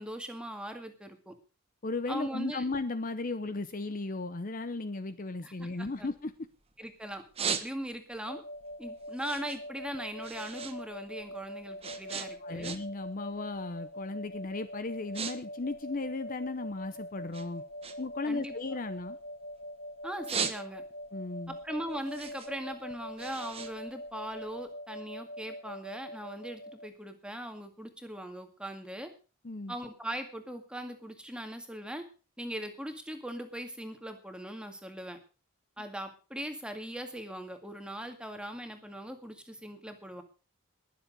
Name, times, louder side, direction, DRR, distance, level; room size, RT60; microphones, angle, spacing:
voice 1, 0.0-1.3 2.1-2.7 5.4-6.1 6.8-8.4 8.8-12.8 18.3-18.5 20.0-20.8 21.5-29.1 29.7-32.0 32.4-35.2 35.8-40.2, equal, 5° right, 6 dB, 2.0 m, -40 dB
voice 2, 1.8-6.3 12.4-17.6 18.0-19.2 21.1-21.6 29.4-29.7, left 3 dB, 40° left, 11 dB, 0.7 m, -35 dB
sound 1, 5.6-6.7 7.1-8.2 8.6-10.8 11.1-13.1 13.4-13.7 14.3-14.5 14.8-15.3 15.6-16.8 17.3-19.6 20.0-21.1 21.5-24.6, right 6 dB, 25° right, 1.2 m, -38 dB
sound 2, 8.3-26.9, equal, 65° left, 1.5 m, -44 dB
21.0 x 7.4 x 5.3 m, 0.36 s
head